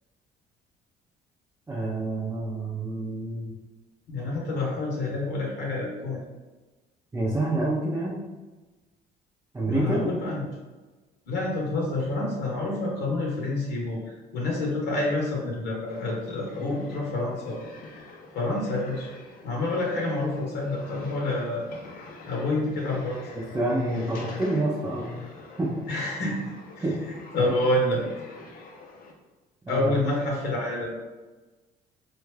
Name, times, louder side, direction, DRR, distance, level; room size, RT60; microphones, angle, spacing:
voice 1, 1.7-3.5 7.1-8.2 9.5-10.0 23.3-25.2 25.6-25.7 26.8-27.0 27.4-27.5 29.7-29.9, right 2 dB, 15° right, -6 dB, 0.6 m, -27 dB
voice 2, 4.1-6.2 9.6-10.5 11.3-17.6 18.3-19.1 19.4-21.7 22.3-23.2 25.9-26.4 26.8-26.9 27.3-28.0 29.7-31.0, left 2 dB, 80° left, -3 dB, 1.0 m, -28 dB
sound 1, 15.9-29.1, left 3 dB, 60° left, 0.6 m, -45 dB
3.2 x 2.4 x 3.2 m, 1.2 s
cardioid pair, 110°, 17 cm